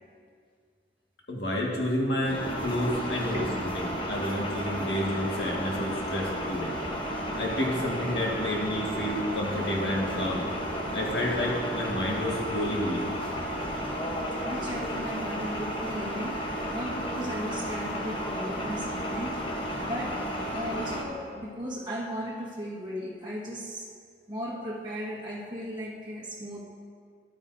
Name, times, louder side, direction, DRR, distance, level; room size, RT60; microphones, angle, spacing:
voice 1, 1.3-6.7 7.4-10.4 10.9-13.1, left 1 dB, 75° left, -3 dB, 1.7 m, -30 dB
sound 1, 2.2-21.0, equal, 30° left, 1.0 m, -33 dB
voice 2, 14.1-16.4 16.7-19.4 19.7-23.9 24.3-26.6, equal, 25° right, -5 dB, 1.4 m, -36 dB
11.5 x 9.4 x 2.7 m, 2.1 s
head